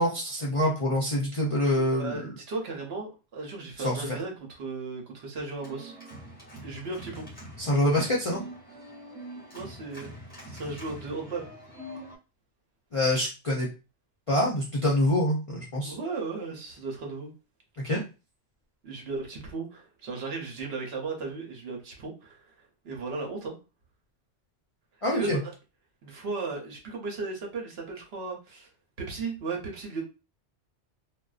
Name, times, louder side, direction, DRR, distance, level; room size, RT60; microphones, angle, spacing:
voice 1, 0.0-2.3 3.8-4.1 7.6-8.4 12.9-13.7 14.3-15.9 17.8-18.0 25.0-25.4, left 1 dB, 45° left, -5 dB, 0.4 m, -25 dB
voice 2, 1.8-6.0 6.6-7.3 9.5-11.5 15.8-17.3 18.8-23.6 25.1-25.5 26.0-28.7 29.0-30.0, right 3 dB, 65° right, 1 dB, 0.9 m, -36 dB
Organ, 5.5-12.2, equal, 10° left, 1.0 m, -44 dB
2.5 x 2.1 x 2.3 m, 0.31 s
omnidirectional pair, 1.2 m